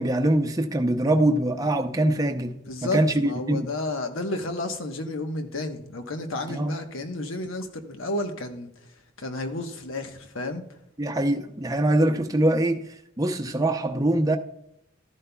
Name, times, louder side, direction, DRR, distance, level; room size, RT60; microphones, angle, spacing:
voice 1, 0.0-3.7 6.5-6.7 11.0-12.8 13.2-14.4, right 1 dB, 20° right, 0.6 m, -23 dB
voice 2, 2.6-8.7 9.2-10.6, left 2 dB, 85° left, 1.2 m, -31 dB
13.0 x 11.0 x 2.3 m
head